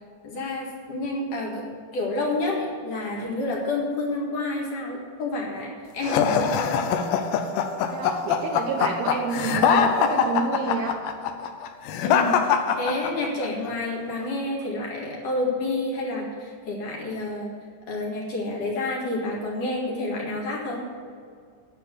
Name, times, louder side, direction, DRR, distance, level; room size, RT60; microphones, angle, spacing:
voice 1, 0.2-1.6 1.9-6.8 12.0-17.5 17.9-20.8, left 2 dB, 55° left, -3 dB, 3.0 m, -29 dB
sound 1, 6.0-13.5, left 7 dB, 80° left, 2.7 m, -23 dB
voice 2, 7.8-11.0, right 5 dB, 75° right, 1 dB, 2.5 m, -29 dB
11.0 x 7.0 x 8.2 m, 2.1 s
omnidirectional pair, 5.2 m